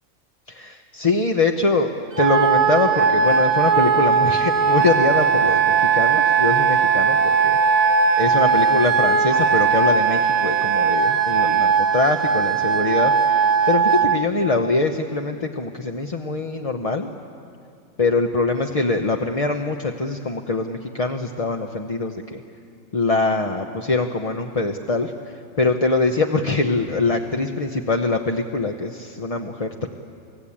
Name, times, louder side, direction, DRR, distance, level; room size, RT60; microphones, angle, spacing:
voice 1, 0.5-1.9 2.2-7.2 7.4-17.1 18.0-22.4 22.9-29.9, left 3 dB, 30° left, 4 dB, 0.8 m, -23 dB
Wind instrument woodwind instrument, 2.1-14.2, right 6 dB, 30° right, 1.2 m, -18 dB
29.0 x 18.5 x 8.6 m, 2.4 s
omnidirectional pair, 1.5 m